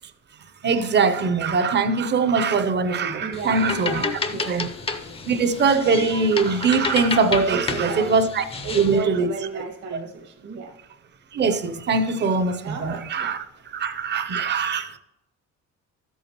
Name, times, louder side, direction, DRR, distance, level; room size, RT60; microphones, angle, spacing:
voice 1, 0.6-4.1 4.5-4.7 5.3-8.4 8.7-9.3 11.3-13.4 13.7-15.0, right 4 dB, 35° right, 0.7 m, -22 dB
voice 2, 3.2-4.5 7.5-8.2 8.6-10.8 12.6-13.3, right 4 dB, 60° right, 1.2 m, -34 dB
sound 1, 3.3-9.0, left 4 dB, 20° left, 0.5 m, -30 dB
13.5 x 8.2 x 3.0 m
cardioid pair, 165°, 30 cm